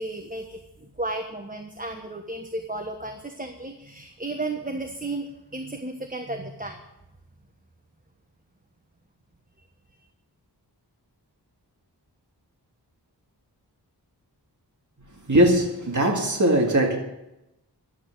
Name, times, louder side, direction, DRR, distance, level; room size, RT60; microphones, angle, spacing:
voice 1, 0.0-6.8, right 2 dB, 20° right, 5 dB, 1.2 m, -34 dB
voice 2, 15.3-17.0, right 1 dB, 45° right, 0 dB, 2.1 m, -20 dB
12.0 x 8.6 x 8.0 m, 0.90 s
wide cardioid pair, 60°, 41 cm